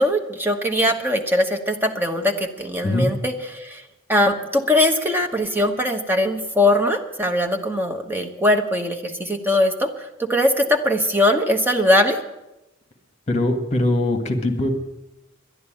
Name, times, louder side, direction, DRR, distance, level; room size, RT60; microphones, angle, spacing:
voice 1, 0.0-3.8 4.1-9.9 10.2-12.2, left 1 dB, 10° right, 3 dB, 1.1 m, -21 dB
voice 2, 13.3-14.7, left 1 dB, 35° left, 6 dB, 1.6 m, -21 dB
11.0 x 11.0 x 8.9 m, 0.95 s
head